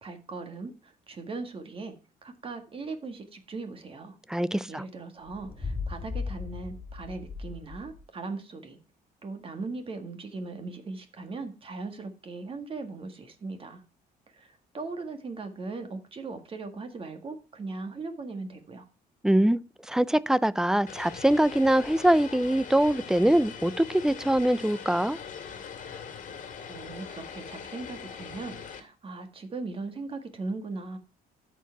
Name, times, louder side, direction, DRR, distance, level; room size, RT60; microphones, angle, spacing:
voice 1, 0.0-2.0 2.2-4.2 4.7-8.8 9.2-13.8 14.3-18.9 26.3-31.0, right 3 dB, 35° right, 1.8 m, -39 dB
voice 2, 4.3-4.8 19.2-19.6 19.9-25.2, right 1 dB, 5° right, 0.4 m, -23 dB
sound 1, 5.2-8.0, left 4 dB, 20° left, 2.5 m, -37 dB
Vehicle, 20.9-28.8, left 7 dB, 50° left, 1.9 m, -41 dB
13.0 x 4.7 x 4.6 m
cardioid pair, 110°, 17 cm